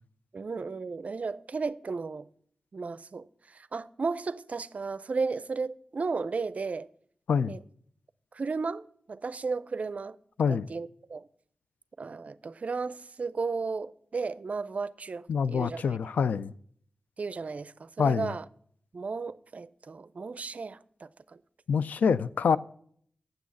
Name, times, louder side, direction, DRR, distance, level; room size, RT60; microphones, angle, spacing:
voice 1, 0.3-2.3 2.7-6.9 7.5-7.6 8.3-10.2 10.5-11.3 12.0-16.0 17.2-18.5 18.9-21.4, right 4 dB, 60° right, 0.4 m, -34 dB
voice 2, 15.3-16.5 18.0-18.3 21.7-22.6, left 6 dB, 90° left, 0.3 m, -26 dB
7.9 x 6.3 x 8.1 m
cardioid pair, 40°, 3 cm